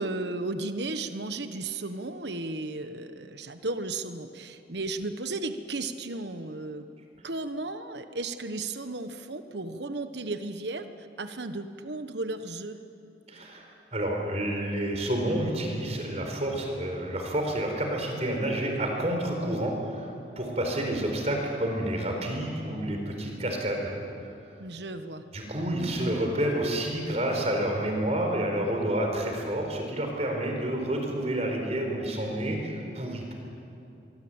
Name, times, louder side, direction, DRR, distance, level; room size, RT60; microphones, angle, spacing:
voice 1, 0.0-6.8 7.2-10.8 11.2-12.8 24.6-25.2, right 2 dB, 70° right, 9 dB, 1.2 m, -34 dB
voice 2, 13.3-13.7 13.9-20.1 20.4-23.9 25.3-33.3, right 1 dB, 35° right, 2 dB, 4.5 m, -29 dB
24.5 x 23.0 x 8.9 m, 2.7 s
head